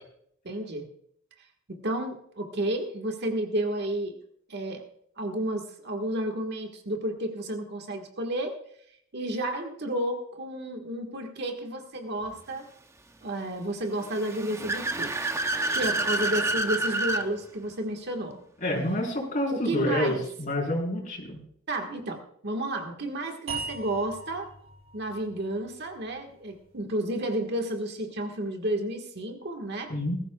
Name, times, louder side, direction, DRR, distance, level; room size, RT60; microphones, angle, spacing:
voice 1, 0.4-0.9 1.7-4.2 4.5-4.8 5.2-8.6 9.1-12.7 13.2-15.1 15.7-18.4 19.5-20.2 21.7-24.5 24.9-29.9, right 1 dB, 55° right, 3 dB, 1.6 m, -31 dB
Car / Accelerating revving vroom, 14.0-17.3, right 2 dB, 15° right, 0.7 m, -28 dB
voice 2, 18.6-21.4 29.9-30.2, left 1 dB, 40° left, -2 dB, 4.4 m, -28 dB
sound 1, 23.5-26.7, right 4 dB, 85° right, 5.9 m, -40 dB
20.5 x 13.5 x 2.3 m, 0.67 s
head